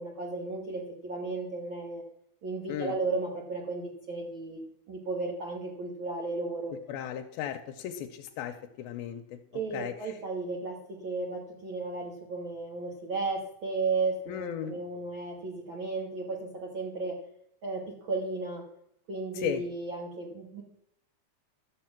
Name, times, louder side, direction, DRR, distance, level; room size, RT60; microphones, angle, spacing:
voice 1, 0.0-2.0 2.4-4.6 4.9-6.7 9.5-17.2 17.6-18.6 19.1-20.6, right 3 dB, 90° right, -1 dB, 1.0 m, -34 dB
voice 2, 6.9-9.4 9.7-10.1 14.3-14.7 19.3-19.6, left 9 dB, 85° left, 5 dB, 2.5 m, -36 dB
13.0 x 6.8 x 5.9 m, 0.76 s
omnidirectional pair, 4.4 m